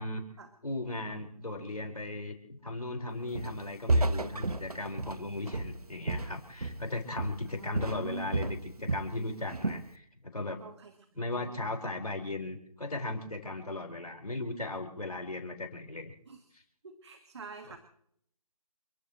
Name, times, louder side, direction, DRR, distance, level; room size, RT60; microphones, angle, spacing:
voice 1, 0.6-10.6 11.1-16.1, left 2 dB, 85° left, 2 dB, 5.0 m, -37 dB
Walk footsteps, 3.4-3.6 3.9-6.9 7.2-7.5 7.8-9.1 9.5-9.9, right 2 dB, 80° right, 1.3 m, -31 dB
voice 2, 7.4-8.3 9.2-9.5 10.6-11.8 16.3-16.4 16.8-17.8, right 4 dB, 45° right, 8 dB, 1.8 m, -46 dB
29.0 x 15.0 x 3.2 m, 0.68 s
figure-of-eight pair, 155°, 19 cm